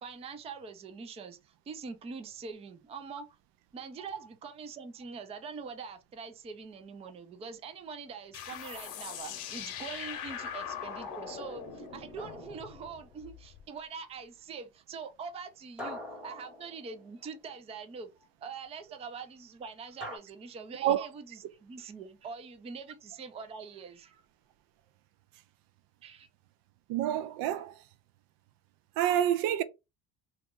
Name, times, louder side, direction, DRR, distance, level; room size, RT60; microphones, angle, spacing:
voice 1, 0.0-3.3 3.7-24.2 26.0-26.3, right 5 dB, 20° right, 0.3 m, -44 dB
sound 1, 8.3-13.6, left 8 dB, 75° left, 0.8 m, -41 dB
sound 2, 12.2-13.4 15.8-17.5 20.0-20.2, left 1 dB, 5° right, 1.1 m, -44 dB
voice 2, 26.9-27.8 29.0-29.6, right 11 dB, 75° right, 0.5 m, -28 dB
2.9 x 2.3 x 3.6 m
cardioid pair, 140°, 36 cm